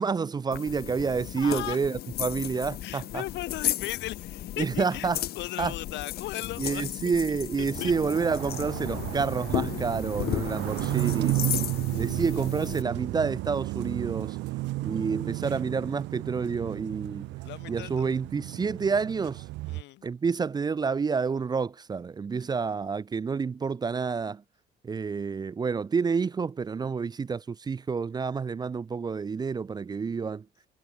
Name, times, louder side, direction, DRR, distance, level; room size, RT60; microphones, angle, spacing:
voice 1, 0.0-3.2 4.6-5.2 5.6-5.7 6.6-11.5 12.0-14.4 14.8-17.3 17.7-19.4 20.0-24.4 24.8-30.5, right 5 dB, 25° right, 0.5 m, -29 dB
sound 1, 0.5-12.8, left 13 dB, 60° left, 0.7 m, -35 dB
voice 2, 1.4-1.8 2.8-5.1 5.4-7.1 7.6-7.9 17.4-18.1 19.7-20.1, left 17 dB, 80° left, 2.0 m, -37 dB
sound 2, 7.8-19.8, right 20 dB, 80° right, 0.6 m, -33 dB
cardioid pair, 115°, 18 cm